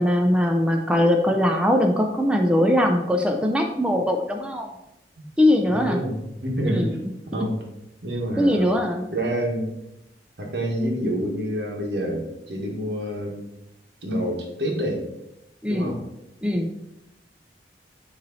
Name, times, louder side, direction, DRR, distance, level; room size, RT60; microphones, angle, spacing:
voice 1, 0.0-4.7 5.4-6.0 6.6-6.9 7.3-7.5 8.4-9.1 15.6-15.9 16.4-16.7, left 1 dB, 5° right, 3 dB, 0.5 m, -21 dB
voice 2, 5.7-7.0 7.3-7.6 8.0-8.7 9.1-9.7 10.4-13.4 14.0-15.0 15.7-16.0, equal, 70° right, 0 dB, 1.6 m, -27 dB
9.4 x 3.2 x 4.0 m, 0.87 s
head